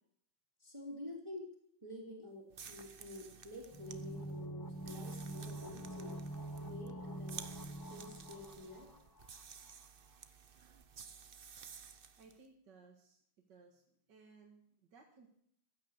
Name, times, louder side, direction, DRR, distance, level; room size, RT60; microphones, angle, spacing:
voice 1, 0.6-1.5 1.8-6.2 6.6-7.4 7.9-8.9, left 1 dB, 15° right, -3 dB, 2.7 m, -49 dB
sound 1, 2.5-12.4, right 6 dB, 75° right, 0.5 m, -54 dB
sound 2, 3.7-9.4 9.7-9.8, right 1 dB, 25° left, 0.4 m, -45 dB
voice 2, 11.8-13.2 13.5-15.3, right 4 dB, 60° right, 0 dB, 2.3 m, -62 dB
15.5 x 9.6 x 8.0 m, 0.69 s
omnidirectional pair, 2.3 m